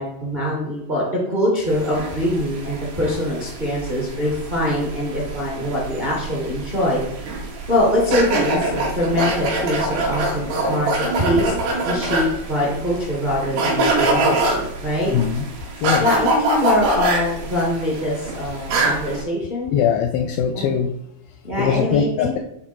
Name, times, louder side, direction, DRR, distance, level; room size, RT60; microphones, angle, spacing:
voice 1, 0.0-7.0 7.7-11.5 11.8-15.1 16.0-19.7 20.5-20.7 21.4-22.4, left 1 dB, 35° right, -3 dB, 0.7 m, -23 dB
sound 1, 1.7-19.2, right 2 dB, 75° right, 3.8 m, -25 dB
voice 2, 15.1-15.5 15.8-16.0 19.7-20.9 21.6-22.4, left 8 dB, 85° left, 6 dB, 2.1 m, -21 dB
11.0 x 3.9 x 4.6 m, 0.82 s
omnidirectional pair, 4.6 m